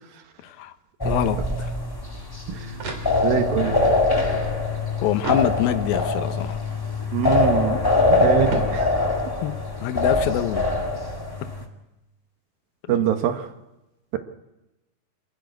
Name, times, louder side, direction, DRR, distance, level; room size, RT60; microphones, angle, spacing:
voice 1, 0.4-0.7 1.0-1.4 5.0-6.6 7.7-7.8 9.4-10.7 13.0-13.1, left 12 dB, 70° left, 2.5 m, -25 dB
sound 1, 1.0-11.6, left 2 dB, 35° left, 0.3 m, -23 dB
sound 2, 2.8-3.6 5.2-6.1 8.5-9.4, right 3 dB, 45° right, 3.5 m, -34 dB
voice 2, 3.2-3.7 7.1-7.8 8.1-9.0 12.9-13.5, right 10 dB, 70° right, 2.7 m, -24 dB
27.5 x 12.5 x 9.4 m
omnidirectional pair, 4.9 m